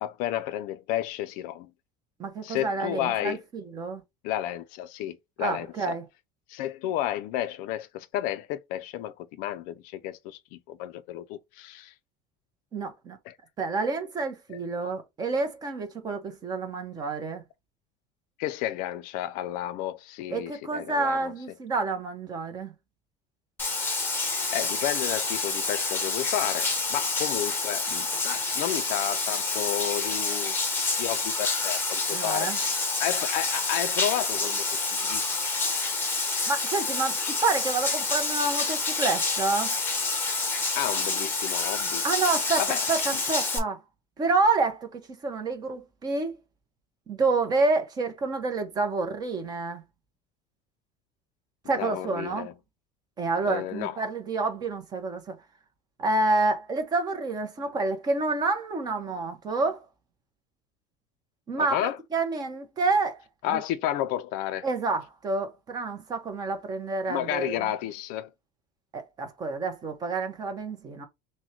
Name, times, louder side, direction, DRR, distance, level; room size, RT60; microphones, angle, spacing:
voice 1, 0.0-1.7 2.4-3.4 4.2-6.0 6.5-11.9 13.3-13.4 14.5-14.6 18.4-21.3 24.5-30.5 31.0-35.3 40.8-42.0 42.6-42.9 51.8-52.5 53.5-54.0 61.6-62.0 63.4-64.7 67.1-68.3, left 12 dB, 55° left, 0.4 m, -32 dB
voice 2, 2.2-4.0 5.4-6.0 12.7-13.2 13.6-17.4 20.3-22.7 32.1-32.6 36.5-39.7 42.0-43.8 44.2-46.4 47.1-49.8 51.7-52.5 53.2-55.4 56.0-59.8 61.5-63.2 63.5-63.6 64.6-67.6 68.9-71.1, right 3 dB, 20° right, 0.7 m, -28 dB
Bathtub (filling or washing), 23.6-43.6, left 3 dB, 10° left, 0.8 m, -28 dB
6.0 x 2.2 x 2.8 m
cardioid pair, 180°, 17 cm